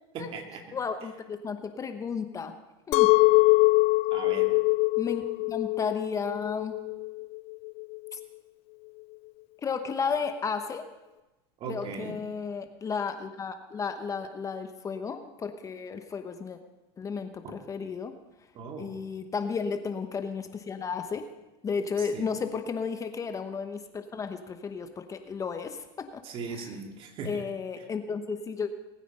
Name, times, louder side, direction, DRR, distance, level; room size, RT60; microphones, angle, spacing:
voice 1, 0.1-0.6 4.1-4.6 11.6-12.2 17.4-17.5 18.5-19.0 22.1-22.4 26.2-27.4, right 4 dB, 40° right, 3 dB, 2.4 m, -38 dB
voice 2, 0.7-2.5 2.9-3.1 5.0-6.8 8.1-8.2 9.6-10.8 11.7-16.6 17.0-18.1 18.8-21.3 21.6-26.2 26.5-26.7 27.2-28.7, left 5 dB, 25° left, 8 dB, 1.0 m, -33 dB
Chink clink, 2.9-8.1, left 24 dB, 50° left, 0.4 m, -23 dB
20.0 x 9.3 x 5.5 m, 1.1 s
supercardioid pair, 115°, 14 cm